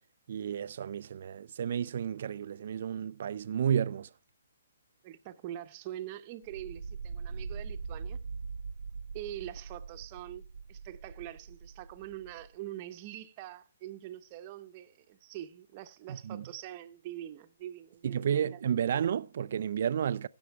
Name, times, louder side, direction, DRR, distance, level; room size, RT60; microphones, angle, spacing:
voice 1, 0.3-4.1 16.1-16.4 18.0-20.3, right 8 dB, 55° right, 0.4 m, -31 dB
voice 2, 5.0-8.2 9.1-18.5, right 13 dB, 30° right, 0.9 m, -44 dB
sound 1, 6.4-12.5, right 5 dB, 85° right, 1.1 m, -42 dB
16.0 x 6.2 x 4.7 m
hypercardioid pair, 150°, 0 cm